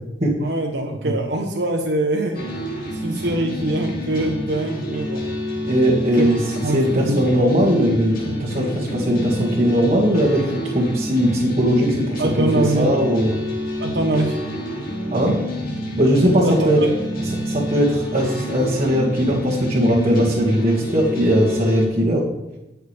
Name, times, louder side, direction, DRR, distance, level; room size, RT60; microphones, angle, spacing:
voice 1, 0.4-2.4 2.9-5.2 5.6-5.7 6.2-6.3 6.6-7.2 12.2-12.9 13.8-14.4 16.4-16.9, right 1 dB, 75° right, 2 dB, 1.2 m, -23 dB
sound 1, 2.3-21.9, equal, 55° left, 2.8 m, -28 dB
voice 2, 5.7-13.4 15.1-15.4 16.0-16.8 17.4-22.2, equal, 40° right, -7 dB, 2.0 m, -19 dB
19.0 x 6.5 x 3.5 m, 0.98 s
head